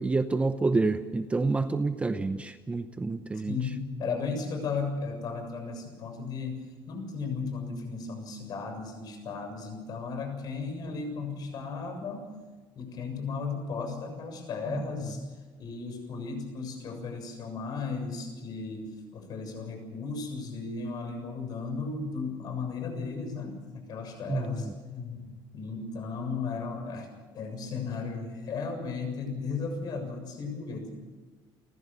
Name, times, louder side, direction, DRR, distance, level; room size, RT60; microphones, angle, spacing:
voice 1, 0.0-3.6 14.7-14.8 24.3-24.7, right 3 dB, 15° right, 10 dB, 0.8 m, -28 dB
voice 2, 3.3-12.3 12.7-15.2 15.6-27.1 27.3-31.0, left 4 dB, 45° left, 5 dB, 7.2 m, -35 dB
30.0 x 15.0 x 6.8 m, 1.3 s
cardioid pair, 150°, 9 cm